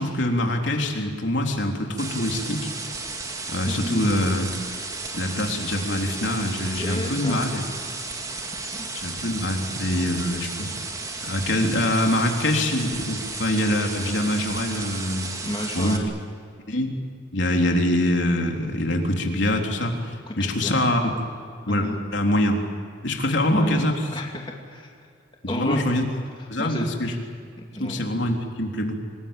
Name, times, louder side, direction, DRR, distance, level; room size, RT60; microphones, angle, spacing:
voice 1, 0.0-2.7 3.5-4.5 5.1-7.6 8.9-10.8 11.2-15.3 15.7-16.0 16.7-16.9 17.3-21.1 21.7-22.6 23.0-24.2 25.4-26.0 26.5-27.1 27.8-29.0, left 1 dB, 65° left, 2 dB, 3.7 m, -24 dB
sound 1, 2.0-16.0, right 3 dB, 15° right, 2.3 m, -33 dB
voice 2, 3.6-4.1 6.5-7.4 8.6-8.9 9.8-10.0 15.4-16.1 20.3-20.8 21.7-22.0 23.5-23.8 24.1-25.0 25.5-25.8 26.4-26.9 27.7-28.0, left 1 dB, 25° left, 1 dB, 2.4 m, -32 dB
26.5 x 20.5 x 9.1 m, 2.3 s
head